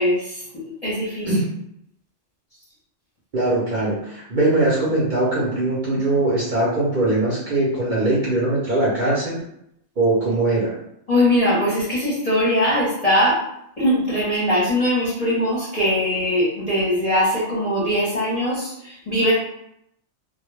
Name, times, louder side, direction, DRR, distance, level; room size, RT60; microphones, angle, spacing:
voice 1, 0.0-1.3 11.1-13.4 13.8-19.3, equal, 35° left, -7 dB, 0.7 m, -21 dB
voice 2, 3.3-9.4 10.0-10.8, right 2 dB, 45° right, -7 dB, 0.7 m, -21 dB
2.2 x 2.1 x 3.1 m, 0.76 s
omnidirectional pair, 1.3 m